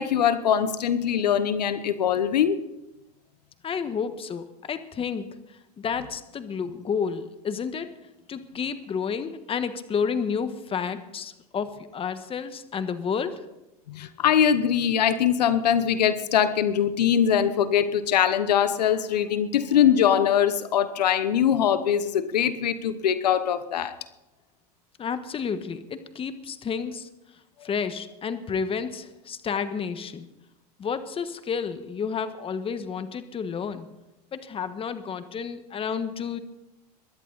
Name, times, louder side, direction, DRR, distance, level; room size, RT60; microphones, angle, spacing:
voice 1, 0.0-2.6 13.9-23.9, left 9 dB, 90° left, 13 dB, 0.9 m, -22 dB
voice 2, 3.6-5.3 5.8-7.9 8.3-13.4 25.0-27.1 27.6-30.3 30.8-33.9 34.3-36.4, left 6 dB, 25° left, 10 dB, 1.3 m, -30 dB
22.0 x 11.0 x 4.1 m, 0.93 s
hypercardioid pair, 100°, 20 cm